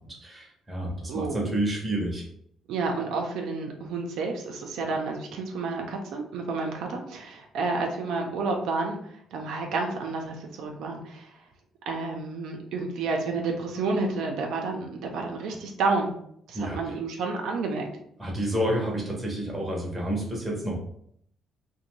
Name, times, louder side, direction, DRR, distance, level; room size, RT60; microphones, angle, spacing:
voice 1, 0.1-2.2 16.5-16.8 18.2-20.8, right 1 dB, 10° right, -2 dB, 0.8 m, -29 dB
voice 2, 1.1-1.5 2.7-11.3 11.9-16.1 16.5-17.9, right 3 dB, 75° right, 1 dB, 0.5 m, -30 dB
2.6 x 2.1 x 3.0 m, 0.68 s
cardioid pair, 135°, 0 cm